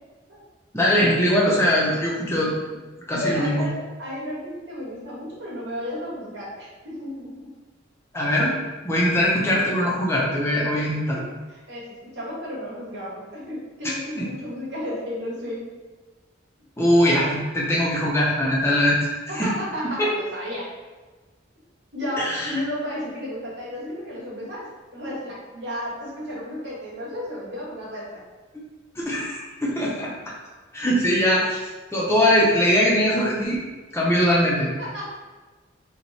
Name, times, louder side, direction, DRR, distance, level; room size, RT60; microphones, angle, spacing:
voice 1, 0.7-2.5 3.1-3.7 8.1-8.6 8.8-11.2 14.2-14.3 16.8-19.1 19.3-19.5 22.2-22.6 28.5-28.6 29.0-30.4 30.7-31.6 31.9-33.6 33.9-34.7, equal, 15° left, -5 dB, 0.5 m, -21 dB
voice 2, 3.1-7.5 11.1-15.7 19.3-20.7 21.9-28.2 34.8-35.0, equal, 65° right, -7 dB, 1.2 m, -33 dB
3.1 x 2.1 x 3.9 m, 1.3 s
head